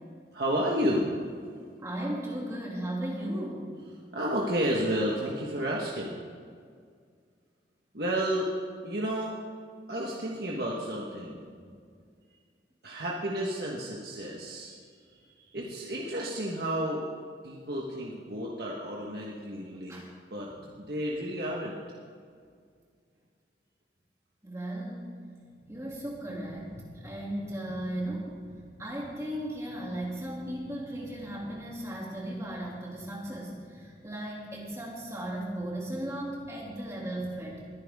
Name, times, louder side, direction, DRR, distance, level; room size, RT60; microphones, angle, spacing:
voice 1, 0.3-1.2 4.1-6.2 7.9-8.5 8.8-9.4 9.9-11.4 12.8-14.7 15.0-17.0 17.4-20.0 20.3-20.5 20.8-21.8, equal, 60° right, -3 dB, 1.4 m, -31 dB
voice 2, 1.8-3.7 11.6-11.7 19.9-20.1 20.5-20.6 24.4-25.1 25.6-37.6, right 1 dB, 15° right, -4 dB, 2.7 m, -36 dB
21.0 x 10.5 x 3.7 m, 2.1 s
head